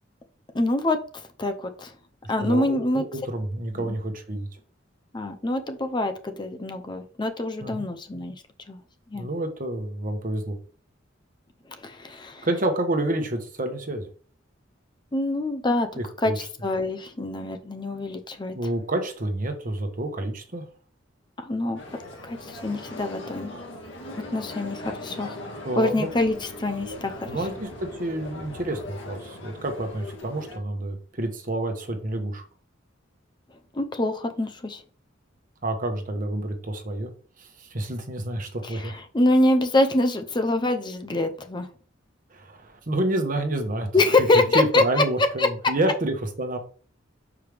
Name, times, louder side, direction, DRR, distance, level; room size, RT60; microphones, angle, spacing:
voice 1, 0.5-1.9 2.3-3.0 3.8-4.0 5.1-8.3 8.7-8.8 9.1-9.3 11.8-12.5 15.1-15.9 16.2-18.5 21.4-21.8 22.2-23.5 24.3-25.4 25.8-27.3 33.7-34.8 38.6-41.7 43.9-45.0 45.4-45.5, left 2 dB, 25° left, 7 dB, 0.6 m, -25 dB
voice 2, 2.4-4.5 7.6-7.8 9.1-10.6 12.4-14.1 15.9-16.4 18.5-20.6 25.6-26.1 27.3-32.4 35.6-37.1 37.4-39.0 42.3-43.9 44.2-44.3 44.5-46.6, right 1 dB, 45° right, 5 dB, 1.2 m, -29 dB
sound 1, 21.8-30.6, left 2 dB, 70° left, 1.9 m, -39 dB
6.5 x 4.9 x 3.4 m, 0.43 s
head